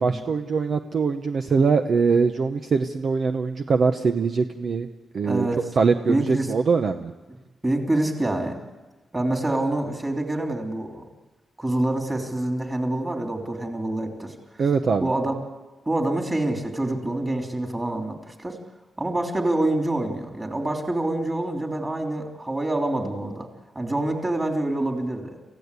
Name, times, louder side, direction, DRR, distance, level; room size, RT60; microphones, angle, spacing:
voice 1, 0.0-4.9 5.1-5.5 5.8-7.1 14.6-15.1, right 5 dB, 50° right, 6 dB, 0.9 m, -22 dB
voice 2, 5.2-5.6 6.1-6.5 7.6-8.6 9.1-11.0 11.6-14.6 15.0-15.3 15.9-18.6 19.0-23.5 23.7-25.4, right 1 dB, 15° right, 2 dB, 3.1 m, -26 dB
28.0 x 16.0 x 8.3 m, 1.2 s
wide cardioid pair, 160°, 0 cm